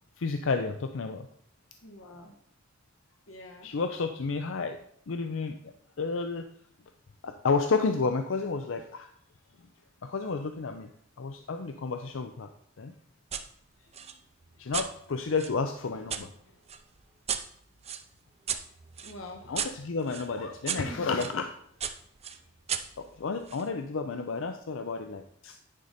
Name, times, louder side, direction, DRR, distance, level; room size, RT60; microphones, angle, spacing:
voice 1, 0.2-1.3 3.6-4.8 5.1-6.5 7.2-9.1 10.0-10.9 11.2-12.5 12.8-12.9 14.6-16.3 19.5-21.5 23.0-25.6, left 4 dB, 70° left, 7 dB, 0.5 m, -31 dB
voice 2, 1.8-2.3 3.3-3.7 13.8-14.1 14.6-14.7 16.5-16.6 19.0-19.5 20.4-21.3, left 1 dB, 85° left, 2 dB, 1.3 m, -45 dB
sound 1, 13.3-13.5 13.9-16.2 16.7-21.4 21.8-23.7, right 8 dB, 30° right, 0.5 m, -37 dB
9.9 x 5.1 x 4.2 m, 0.66 s
head